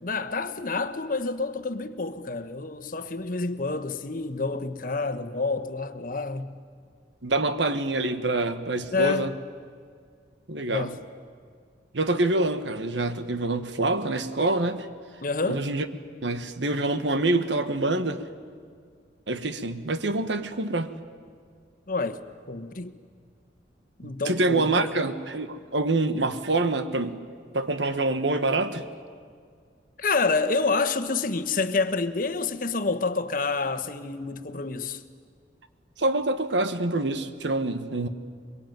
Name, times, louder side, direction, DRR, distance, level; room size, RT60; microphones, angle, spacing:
voice 1, 0.0-6.6 8.9-9.3 10.7-11.0 15.2-15.6 21.9-22.2 22.5-22.9 24.0-24.9 30.0-35.0, left 3 dB, 50° left, 1.2 m, -28 dB
voice 2, 7.2-9.3 10.5-10.9 11.9-14.9 15.5-15.8 16.2-18.2 19.3-20.9 24.0-27.1 27.5-28.8 36.0-38.1, right 2 dB, 85° right, 1.5 m, -26 dB
23.0 x 23.0 x 9.2 m
head